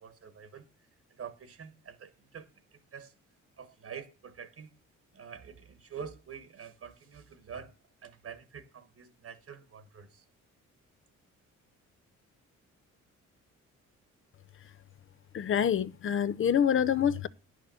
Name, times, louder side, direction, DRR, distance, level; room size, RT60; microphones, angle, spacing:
voice 1, 0.0-0.7 1.2-3.1 3.6-4.7 5.1-7.7 8.0-10.2, right 7 dB, 50° right, 1.3 m, -46 dB
voice 2, 15.3-17.3, left 8 dB, 45° left, 0.7 m, -26 dB
10.0 x 6.4 x 6.9 m
cardioid pair, 90°, 30 cm